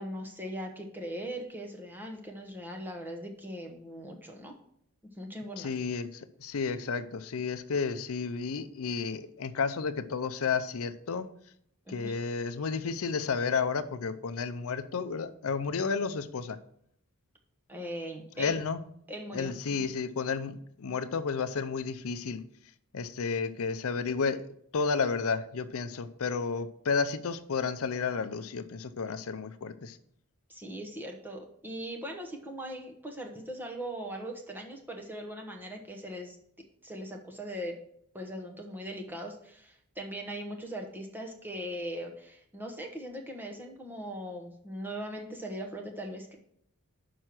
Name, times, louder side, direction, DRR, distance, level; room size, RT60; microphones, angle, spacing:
voice 1, 0.0-4.5 5.2-5.7 11.9-12.2 17.7-18.6 19.1-19.8 30.5-36.4 36.8-37.8 38.1-46.3, equal, 10° right, 1 dB, 1.0 m, -40 dB
voice 2, 5.6-11.3 11.9-16.6 18.4-18.8 19.3-22.4 22.9-24.4 24.7-30.0, left 5 dB, 65° left, 11 dB, 0.5 m, -32 dB
6.3 x 5.5 x 5.9 m, 0.70 s
head